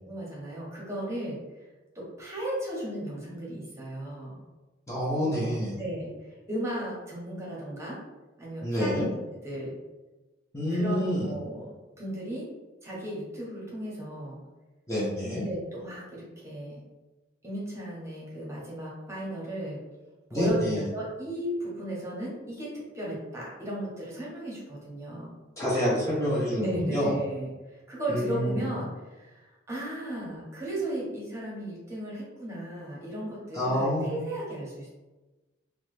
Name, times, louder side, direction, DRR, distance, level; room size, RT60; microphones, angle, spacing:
voice 1, 0.0-1.4 1.9-4.4 5.8-8.0 8.4-9.0 9.4-9.7 10.7-11.7 12.0-12.5 12.8-14.4 15.4-16.8 17.4-19.8 20.3-25.3 26.6-34.9, right 1 dB, 15° right, -5 dB, 0.8 m, -35 dB
voice 2, 4.9-5.8 8.6-9.1 10.5-11.3 14.9-15.5 20.3-20.8 25.6-27.1 28.1-28.7 33.5-34.1, equal, 15° left, -8 dB, 0.5 m, -27 dB
2.9 x 2.1 x 3.2 m, 1.2 s
head